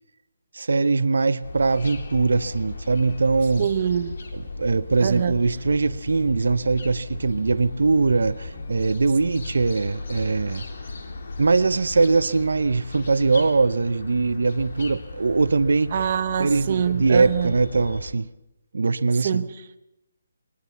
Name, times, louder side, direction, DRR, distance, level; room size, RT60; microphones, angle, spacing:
voice 1, 0.5-3.7 4.3-10.6 11.4-15.9 16.4-18.3 18.7-19.4, right 3 dB, 80° right, 14 dB, 0.9 m, -21 dB
sound 1, 1.4-18.1, left 3 dB, 50° left, 3.3 m, -37 dB
voice 2, 3.6-4.1 5.0-5.4 9.3-9.4 15.9-17.5 19.2-19.8, right 8 dB, 30° right, 8 dB, 1.0 m, -25 dB
21.5 x 20.5 x 7.2 m, 0.86 s
hypercardioid pair, 180°, 0 cm